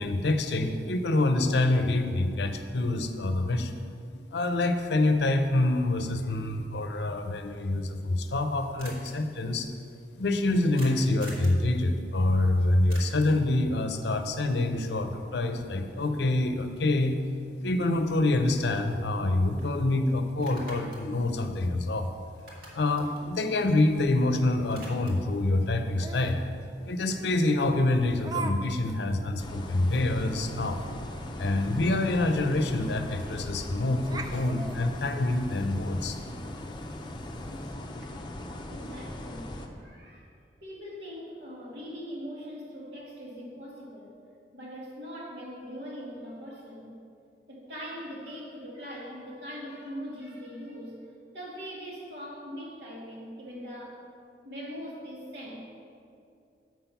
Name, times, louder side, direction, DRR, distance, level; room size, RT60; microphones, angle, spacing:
voice 1, 0.0-3.7 4.1-9.7 10.2-17.2 17.6-22.1 22.7-26.4 26.9-30.8 31.4-36.2 37.4-37.6, left 2 dB, 70° left, 7 dB, 0.6 m, -26 dB
sound 1, 8.8-9.1 10.8-11.6 12.9-13.4 17.6-17.7 18.1-19.3 19.6-19.7 20.3-22.1 22.3-24.2 24.5-25.3, right 1 dB, 55° right, 1.9 m, -47 dB
Laughter, 26.0-26.4 27.3-27.4 28.2-28.6 28.8-28.9 29.4-29.5 29.9-30.0 32.0-32.1 32.4-32.5 33.4-33.7 34.0-35.6, right 4 dB, 20° right, 0.4 m, -38 dB
sound 2, 29.4-39.7, left 1 dB, 25° left, 0.6 m, -39 dB
voice 2, 38.7-39.5 39.8-40.3 40.6-44.2 44.5-47.0 47.5-51.0 51.3-54.0 54.4-55.7, equal, 70° right, -3 dB, 2.0 m, -41 dB
7.4 x 5.9 x 5.7 m, 2.5 s
head